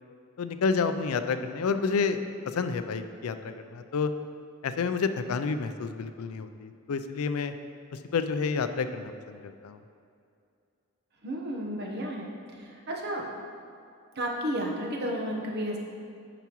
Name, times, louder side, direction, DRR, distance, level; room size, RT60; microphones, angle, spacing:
voice 1, 0.4-4.1 4.6-7.5 8.1-9.8, left 5 dB, 80° left, 9 dB, 0.4 m, -29 dB
voice 2, 11.2-12.3 12.6-13.4 14.2-15.8, equal, 50° right, -1 dB, 1.0 m, -32 dB
9.1 x 5.9 x 3.0 m, 2.4 s
head